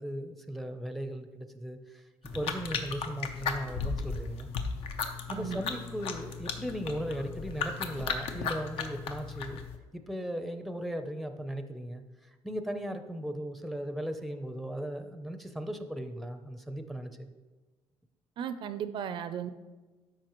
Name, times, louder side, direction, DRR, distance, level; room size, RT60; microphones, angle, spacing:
voice 1, 0.0-2.0 2.3-4.5 5.3-9.6 9.9-12.0 12.4-17.3, equal, ahead, 7 dB, 0.5 m, -37 dB
sound 1, 2.2-9.8, left 5 dB, 75° left, 0.8 m, -36 dB
voice 2, 5.3-5.6 18.4-19.5, right 8 dB, 55° right, 12 dB, 0.4 m, -35 dB
12.5 x 5.0 x 3.0 m, 1.2 s
cardioid pair, 130°, 10 cm